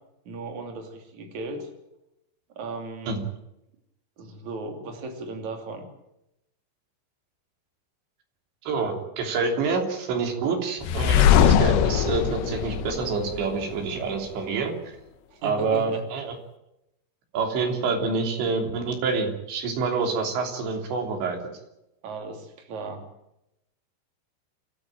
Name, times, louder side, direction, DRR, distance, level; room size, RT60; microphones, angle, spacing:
voice 1, 0.3-1.7 2.6-3.2 4.2-5.9 15.3-16.1 22.0-23.1, right 3 dB, 45° right, 4 dB, 4.0 m, -36 dB
voice 2, 8.6-14.8 15.4-16.4 17.3-21.4, right 4 dB, 85° right, 2 dB, 5.5 m, -27 dB
sound 1, 10.8-13.8, left 9 dB, 80° left, 3.2 m, -20 dB
28.5 x 13.5 x 9.0 m, 0.87 s
omnidirectional pair, 5.0 m